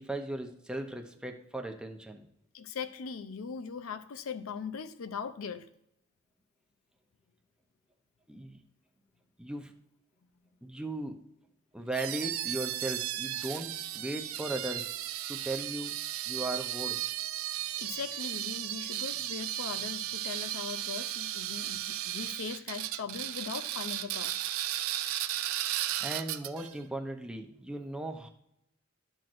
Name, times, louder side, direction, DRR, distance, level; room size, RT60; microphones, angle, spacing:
voice 1, 0.0-2.2 8.3-8.6 9.4-9.7 10.6-11.2 11.7-14.9 15.3-15.9 16.3-17.0 26.0-28.3, right 1 dB, 5° right, 4 dB, 0.7 m, -37 dB
voice 2, 2.5-5.7 17.8-24.4, left 6 dB, 80° left, 12 dB, 0.5 m, -40 dB
sound 1, 11.9-26.7, right 13 dB, 75° right, 0.4 m, -35 dB
12.0 x 6.0 x 2.6 m, 0.80 s
head